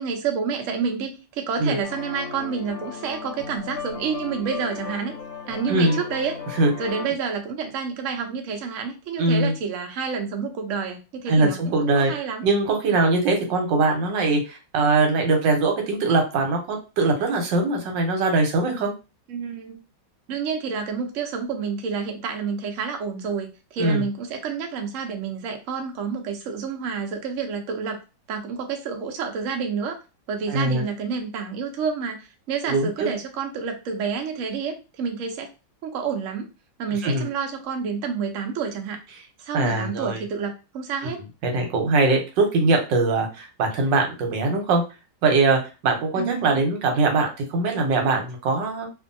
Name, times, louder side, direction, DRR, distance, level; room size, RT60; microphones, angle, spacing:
voice 1, 0.0-5.1 5.5-6.4 6.8-12.4 19.3-19.8 20.3-28.0 28.3-30.0 30.3-35.5 35.8-36.5 36.8-39.0 39.4-41.2 46.2-46.6, right 6 dB, 65° right, 4 dB, 0.8 m, -29 dB
sound 1, 1.8-7.1, left 5 dB, 70° left, 1.0 m, -36 dB
voice 2, 5.7-6.0 6.6-6.7 9.2-9.5 11.3-12.1 12.4-18.9 23.8-24.0 30.5-30.8 32.7-33.1 37.0-37.3 39.5-40.2 41.0-41.1 41.4-44.8 45.2-48.9, right 3 dB, 80° right, 3 dB, 1.4 m, -21 dB
2.6 x 2.6 x 2.6 m, 0.29 s
omnidirectional pair, 2.0 m